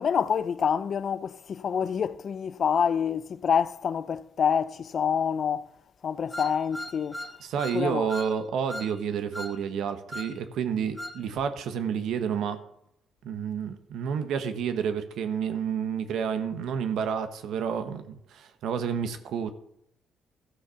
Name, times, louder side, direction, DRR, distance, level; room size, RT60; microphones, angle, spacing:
voice 1, 0.0-5.7 6.0-7.3 7.7-8.1, left 7 dB, 55° left, 0.5 m, -27 dB
sound 1, 6.3-7.8 8.1-8.3 8.7-8.9 9.3-9.6 10.1-10.3 11.0-11.2, left 1 dB, 10° left, 1.1 m, -37 dB
voice 2, 7.5-12.6 13.2-19.5, right 7 dB, 80° right, 1.0 m, -30 dB
13.0 x 6.6 x 5.6 m
cardioid pair, 90°, 0 cm